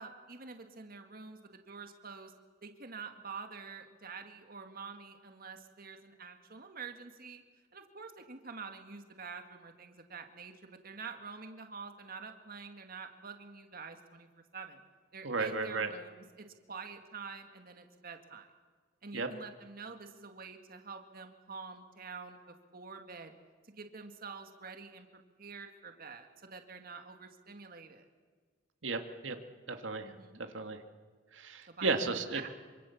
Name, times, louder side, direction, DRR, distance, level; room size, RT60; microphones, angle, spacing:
voice 1, 0.0-2.3 2.6-7.4 7.7-14.3 14.5-14.8 15.1-18.5 19.0-23.3 23.6-25.1 25.4-28.0 30.0-30.4 31.7-32.5, right 5 dB, 50° right, 5 dB, 2.0 m, -47 dB
voice 2, 15.2-15.9 19.1-19.3 28.8-29.4 29.7-30.1 30.5-30.8 31.3-32.4, right 3 dB, 90° right, 6 dB, 2.0 m, -34 dB
26.5 x 25.5 x 7.2 m, 1.5 s
head